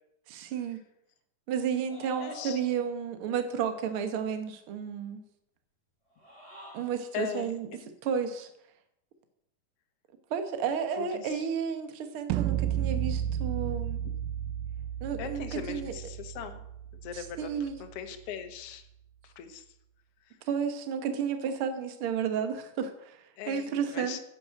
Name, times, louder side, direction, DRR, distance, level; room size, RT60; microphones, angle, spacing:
voice 1, 0.3-0.8 1.5-5.2 6.7-7.7 8.0-8.5 10.3-14.0 15.0-15.9 17.1-17.7 20.5-24.2, right 7 dB, 55° right, 7 dB, 1.8 m, -32 dB
sound 1, 1.9-3.0 6.1-7.1, equal, 20° left, 4.5 m, -47 dB
voice 2, 2.2-2.6 7.1-7.9 11.0-11.5 15.2-16.6 17.0-17.5 17.8-18.9 19.2-19.6 20.3-20.4 23.4-24.2, left 9 dB, 60° left, 7 dB, 1.8 m, -40 dB
sound 2, 12.3-18.3, right 10 dB, 85° right, 2.2 m, -33 dB
10.5 x 8.0 x 7.7 m, 0.79 s
omnidirectional pair, 3.7 m